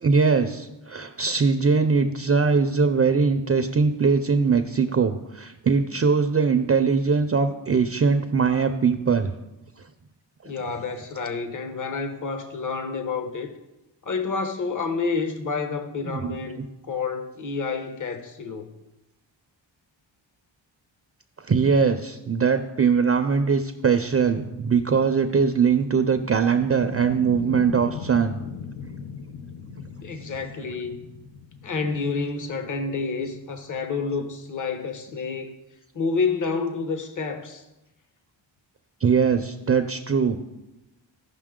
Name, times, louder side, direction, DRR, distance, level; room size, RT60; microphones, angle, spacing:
voice 1, 0.0-9.3 16.0-16.3 21.5-28.4 39.0-40.4, right 5 dB, 30° right, 7 dB, 0.5 m, -21 dB
voice 2, 10.4-13.5 14.0-18.7 30.0-31.0 31.6-35.6 35.9-37.6, left 4 dB, 40° left, 7 dB, 1.0 m, -29 dB
sound 1, 25.3-34.7, left 6 dB, 70° left, 0.7 m, -40 dB
15.0 x 5.6 x 3.7 m, 0.98 s
wide cardioid pair, 95°, 46 cm